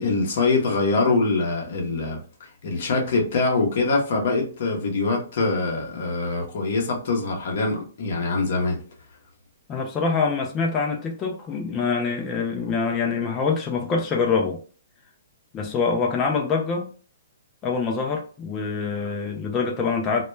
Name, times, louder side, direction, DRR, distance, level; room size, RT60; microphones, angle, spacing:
voice 1, 0.0-2.2 2.6-8.8, left 3 dB, 50° left, 0.7 m, -23 dB
voice 2, 9.7-14.6 15.5-16.9 17.6-20.2, left 5 dB, 15° left, 0.3 m, -25 dB
2.1 x 2.1 x 3.0 m
hypercardioid pair, 170°, 0 cm